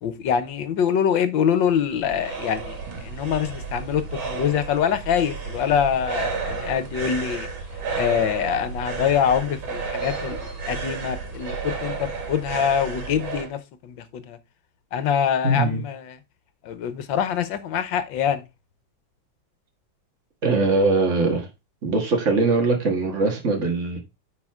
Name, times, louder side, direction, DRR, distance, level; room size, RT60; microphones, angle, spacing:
voice 1, 0.0-7.5 7.9-14.4 14.9-16.2 16.6-18.4, left 8 dB, 75° left, 1.6 m, -24 dB
sound 1, 1.6-13.5, right 4 dB, 80° right, 2.7 m, -32 dB
voice 2, 15.4-15.8 20.4-21.5 21.8-24.0, right 3 dB, 40° right, 2.0 m, -21 dB
9.5 x 4.8 x 3.6 m
omnidirectional pair, 2.1 m